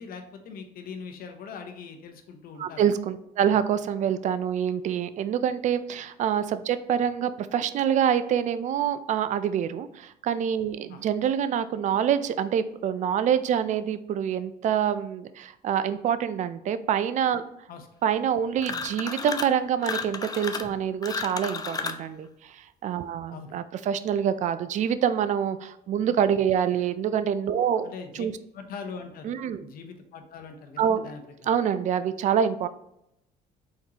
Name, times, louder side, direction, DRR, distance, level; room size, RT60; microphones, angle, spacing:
voice 1, 0.0-2.9 3.5-3.6 10.9-11.0 17.7-17.9 18.7-18.8 23.3-23.6 27.8-28.3 28.5-31.2, left 5 dB, 60° left, 6 dB, 0.8 m, -41 dB
voice 2, 2.6-17.4 18.0-27.9 28.2-28.3 29.2-29.6 30.8-31.1 31.5-32.7, right 8 dB, 45° right, 13 dB, 0.4 m, -26 dB
sound 1, 18.6-19.6 19.8-22.1, left 5 dB, 25° left, 0.4 m, -33 dB
4.4 x 3.8 x 2.8 m, 0.80 s
cardioid pair, 110°, 17 cm